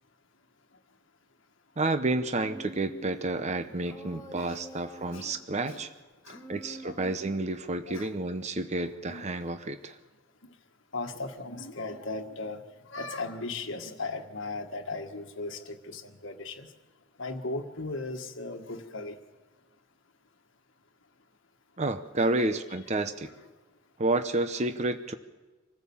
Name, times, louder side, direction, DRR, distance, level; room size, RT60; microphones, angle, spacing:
voice 1, 1.8-5.9 6.5-10.0 21.8-23.3 24.0-25.1, right 2 dB, 35° right, 9 dB, 0.8 m, -30 dB
Human voice, 2.4-3.3 3.9-5.4 6.3-7.6, right 1 dB, 15° left, 1.7 m, -47 dB
voice 2, 3.6-4.6 5.1-5.9 6.2-7.2 7.9-8.1 8.6-9.2 10.9-12.6 12.9-16.7 17.2-19.1 22.2-22.5, left 3 dB, 60° left, 4 dB, 1.7 m, -38 dB
26.0 x 15.5 x 7.2 m, 1.3 s
head